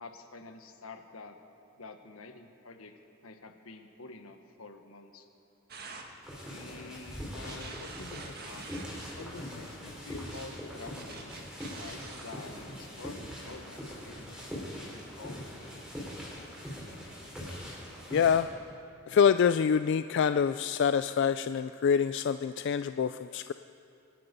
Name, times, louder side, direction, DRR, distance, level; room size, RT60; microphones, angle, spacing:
voice 1, 0.0-1.4 1.8-5.3 6.5-8.8 9.2-14.5 14.8-15.9, left 3 dB, 85° left, 6 dB, 1.4 m, -48 dB
sound 1, 5.7-6.1 7.4-9.2 10.3-10.4 10.9-12.4, right 4 dB, 50° right, 1.7 m, -46 dB
sound 2, 6.2-18.4, equal, 5° right, 4.1 m, -42 dB
voice 2, 18.1-18.5 19.1-23.5, left 7 dB, 60° left, 11 dB, 0.3 m, -26 dB
25.0 x 11.0 x 5.3 m, 2.6 s
head